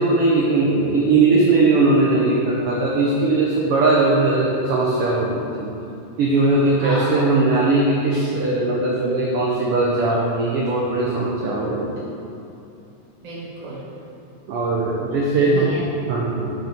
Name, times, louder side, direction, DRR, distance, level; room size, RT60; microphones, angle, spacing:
voice 1, 0.0-5.7 6.2-12.1 14.5-15.7 16.1-16.5, right 2 dB, 85° right, -4 dB, 1.2 m, -19 dB
voice 2, 6.7-7.4 13.2-13.8 15.3-16.0, right 1 dB, 60° right, -7 dB, 0.4 m, -32 dB
6.7 x 5.4 x 4.4 m, 2.8 s
omnidirectional pair, 3.5 m